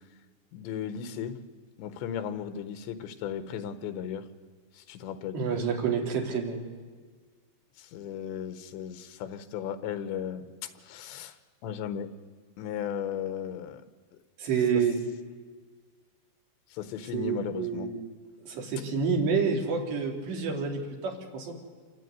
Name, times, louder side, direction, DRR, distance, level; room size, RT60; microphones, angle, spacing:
voice 1, 0.5-1.4 1.8-4.3 4.7-5.4 7.8-11.4 11.6-12.1 12.6-13.9 14.7-14.9 16.7-17.9, left 8 dB, 80° left, 10 dB, 3.5 m, -36 dB
voice 2, 5.3-6.6 14.4-15.0 17.1-18.0 18.5-21.6, right 5 dB, 75° right, 1 dB, 5.6 m, -28 dB
28.0 x 21.5 x 9.5 m, 1.5 s
omnidirectional pair, 5.1 m